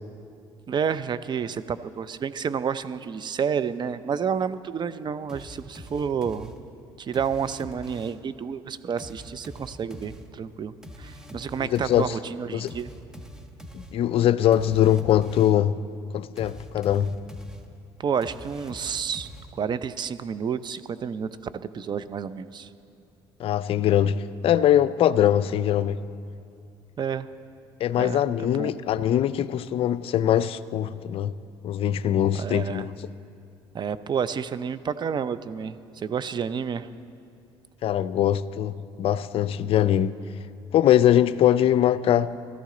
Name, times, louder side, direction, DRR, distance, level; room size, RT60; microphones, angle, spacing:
voice 1, 0.7-6.5 7.0-10.7 11.0-12.9 18.0-21.3 21.7-22.7 27.0-27.3 28.0-28.2 28.5-28.7 32.3-32.9 33.7-36.9, right 7 dB, 40° right, 13 dB, 0.6 m, -30 dB
sound 1, 5.3-8.3 9.0-15.7 16.4-19.9, equal, 5° right, 1.3 m, -44 dB
voice 2, 11.7-12.1 12.5-12.7 13.7-15.8 16.1-17.2 23.4-26.0 27.8-31.3 31.6-32.9 37.8-40.1 40.7-42.3, left 11 dB, 55° left, 16 dB, 0.4 m, -22 dB
17.0 x 13.5 x 3.9 m, 2.5 s
supercardioid pair, 70°, 11 cm